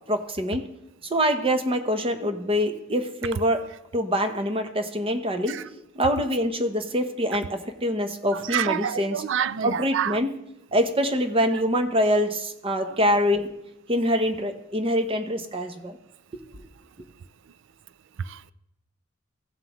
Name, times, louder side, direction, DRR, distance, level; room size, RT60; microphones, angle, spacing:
voice 1, 0.1-0.6 1.1-3.6 3.9-5.6 5.9-9.2 9.6-10.3 10.7-13.5 13.9-16.0, equal, 25° right, 0.9 m, -25 dB
voice 2, 8.5-10.1, right 8 dB, 65° right, 0.4 m, -26 dB
15.5 x 7.5 x 3.1 m
head